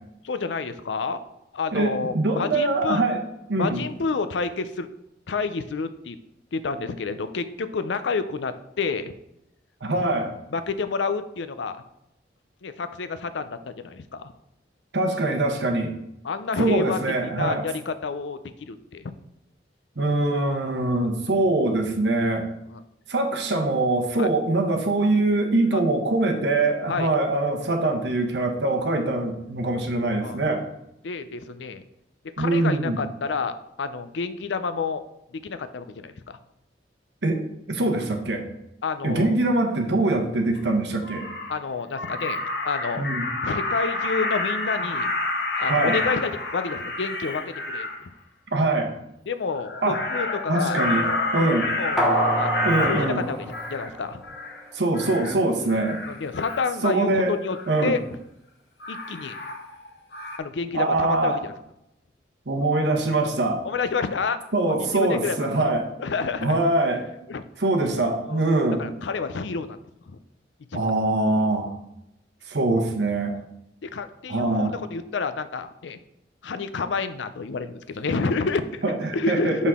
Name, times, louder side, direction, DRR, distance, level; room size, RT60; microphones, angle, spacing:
voice 1, 0.2-1.2 1.5-3.0 3.6-4.9 5.3-6.2 6.5-9.1 10.5-11.8 12.6-14.3 16.2-19.1 22.7-22.8 24.2-24.3 25.7-25.8 26.9-27.1 30.2-30.4 31.0-31.8 32.4-35.0 35.3-36.4 38.8-39.3 41.5-43.1 43.4-45.1 45.6-48.1 49.3-50.8 51.4-51.5 51.8-53.4 53.7-54.2 56.1-57.6 57.8-58.0 58.9-59.4 60.4-61.5 63.6-65.7 66.0-66.6 67.3-67.4 68.2-68.4 68.8-69.8 70.1-70.2 70.7-70.8 73.8-76.0 76.4-78.8 79.1-79.7, left 4 dB, 85° left, 11 dB, 0.5 m, -29 dB
voice 2, 1.7-3.2 3.5-3.8 9.8-10.3 14.9-15.9 16.6-17.6 20.0-22.5 23.1-30.6 32.4-33.0 37.2-38.5 39.0-41.2 43.0-43.3 45.7-46.0 48.5-49.0 49.8-50.0 50.5-51.1 51.3-51.7 52.6-53.2 54.7-56.0 56.8-57.4 57.7-58.0 60.7-61.4 62.5-63.6 64.5-65.9 66.4-67.1 67.6-68.8 70.7-71.7 72.5-73.3 74.3-74.8 78.8-79.7, right 2 dB, 75° right, 4 dB, 1.0 m, -23 dB
Crow, 40.6-40.7 41.0-41.6 41.9-48.0 49.6-53.9 54.2-54.6 54.9-55.4 55.7-56.7 57.5-57.8 58.8-59.9 60.1-60.4, left 2 dB, 65° left, 0.9 m, -29 dB
sound 1, 52.0-54.5 54.9-55.0, right 1 dB, ahead, 1.1 m, -27 dB
6.3 x 5.6 x 3.6 m, 0.82 s
head